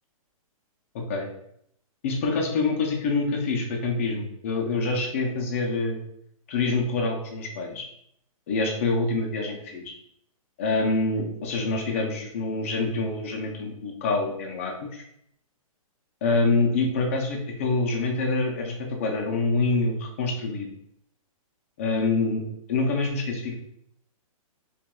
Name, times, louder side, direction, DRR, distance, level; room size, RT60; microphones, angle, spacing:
voice 1, 0.9-1.3 2.0-6.0 6.5-7.8 8.5-9.8 10.6-15.0 16.2-20.7 21.8-22.4 22.7-23.5, left 3 dB, 25° left, 1 dB, 0.4 m, -26 dB
5.8 x 2.2 x 2.2 m, 0.71 s
hypercardioid pair, 165°, 19 cm